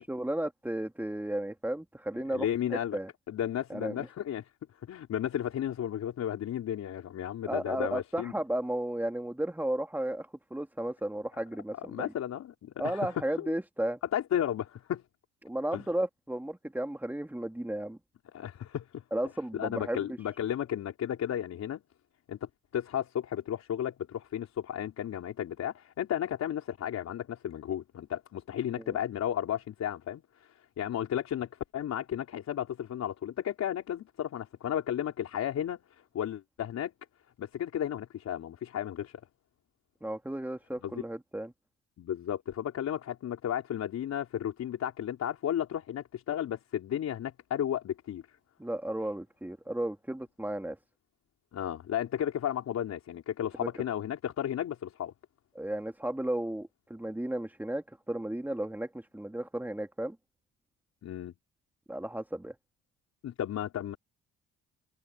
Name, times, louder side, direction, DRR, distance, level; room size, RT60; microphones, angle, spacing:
voice 1, 0.0-3.1 3.7-4.0 7.4-12.1 12.8-14.0 15.4-18.0 19.1-20.2 28.9-29.0 40.0-41.5 48.6-50.8 53.6-53.7 55.5-60.2 61.9-62.5, right 1 dB, 5° right, 3.3 m, -34 dB
voice 2, 2.3-3.0 3.3-4.5 4.9-8.3 11.9-13.1 13.4-13.5 14.1-15.0 15.7-15.8 18.3-19.0 19.5-21.8 22.3-22.4 22.7-35.8 36.1-36.9 37.4-39.2 40.8-41.0 42.0-48.2 51.5-55.1 61.0-61.3 63.2-64.0, left 10 dB, 65° left, 4.4 m, -33 dB
cardioid pair, 85°, 29 cm